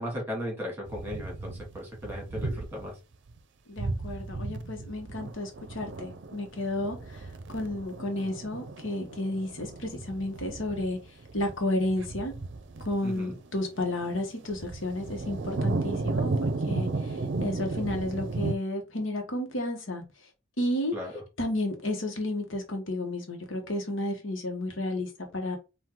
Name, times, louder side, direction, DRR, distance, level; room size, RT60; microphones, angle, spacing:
voice 1, 0.0-3.0 13.0-13.4 20.9-21.1, equal, 10° right, 2.1 m, -36 dB
sound 1, 0.9-2.9 3.3-3.4 3.8-18.5, right 3 dB, 65° right, 0.5 m, -34 dB
voice 2, 3.7-12.3 12.8-20.3 20.6-20.9 21.4-25.6, left 1 dB, 80° left, 1.2 m, -32 dB
4.5 x 2.6 x 3.8 m
head